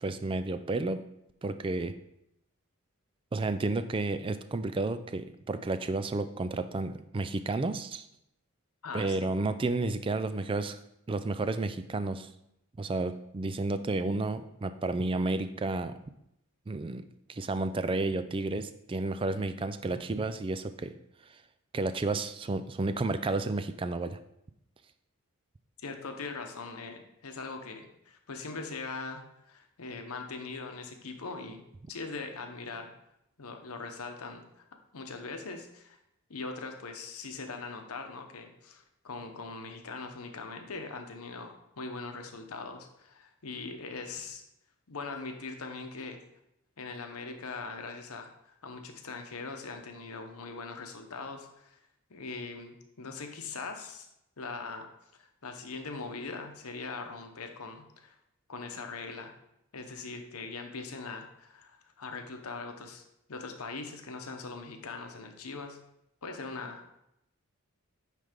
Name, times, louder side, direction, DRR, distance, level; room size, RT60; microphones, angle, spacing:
voice 1, 0.0-1.0 1.4-1.9 3.3-8.1 8.9-10.8 11.1-12.3 12.8-16.0 16.7-17.0 17.3-20.9 21.7-24.2, right 2 dB, 25° right, 11 dB, 0.3 m, -31 dB
voice 2, 8.8-9.2 25.8-31.6 31.9-32.9 33.4-34.6 34.9-36.0 36.3-44.4 44.9-46.2 46.8-51.8 52.1-54.1 54.4-54.9 55.2-58.2 58.5-59.3 59.7-63.0 63.3-65.8 66.2-66.8, left 4 dB, 80° left, 5 dB, 0.9 m, -41 dB
9.3 x 3.3 x 5.1 m, 0.81 s
head